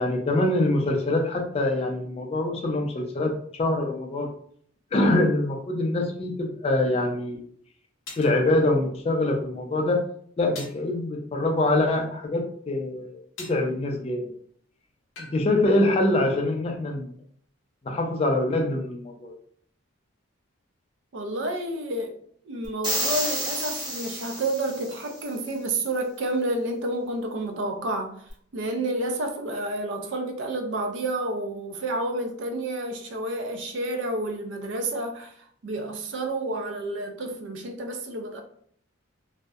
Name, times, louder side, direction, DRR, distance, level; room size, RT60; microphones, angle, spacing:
voice 1, 0.0-3.3 3.6-4.3 4.9-7.4 8.2-10.0 10.4-14.3 15.2-17.1 17.9-19.3, left 2 dB, 30° left, 0.3 m, -24 dB
sound 1, 8.1-8.4 10.6-10.9 13.4-13.7 15.2-15.4, left 3 dB, 80° left, 0.7 m, -41 dB
voice 2, 21.1-22.1 22.5-28.2 28.5-35.3 35.6-38.4, right 1 dB, 65° right, 0.4 m, -30 dB
sound 2, 22.8-25.1, right 1 dB, 20° right, 0.9 m, -30 dB
2.6 x 2.1 x 2.3 m
head